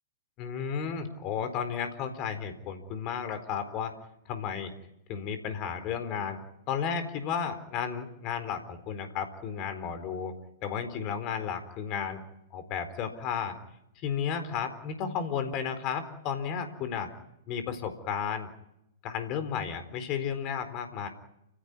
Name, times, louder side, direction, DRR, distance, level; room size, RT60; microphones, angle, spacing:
voice 1, 0.4-3.9 4.3-4.7 5.1-6.4 6.7-10.3 10.6-12.2 12.5-13.5 14.0-17.1 17.5-18.5 19.0-21.1, left 7 dB, 35° left, 9 dB, 4.2 m, -33 dB
29.0 x 16.5 x 9.7 m, 0.86 s
figure-of-eight pair, 110°, 0 cm